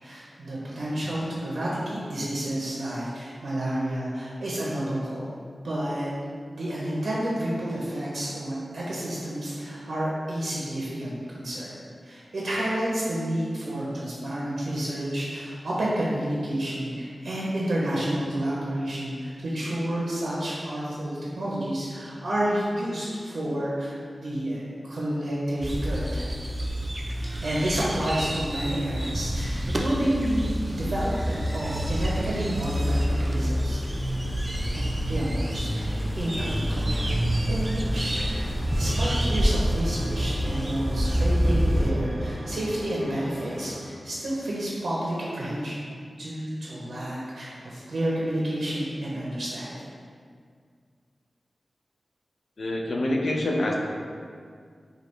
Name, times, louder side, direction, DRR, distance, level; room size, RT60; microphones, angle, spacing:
voice 1, 0.0-5.4 5.6-6.1 6.5-11.7 12.0-26.2 27.4-33.8 34.7-37.2 37.5-45.8 46.2-49.8, right 1 dB, 85° right, -6 dB, 0.6 m, -30 dB
sound 1, 25.6-41.9, equal, 25° right, 0.4 m, -27 dB
sound 2, 29.5-44.9, equal, 55° left, 1.2 m, -42 dB
voice 2, 52.6-53.7, left 1 dB, 75° left, -1 dB, 0.5 m, -26 dB
4.9 x 2.3 x 3.1 m, 2.1 s
wide cardioid pair, 100°, 0 cm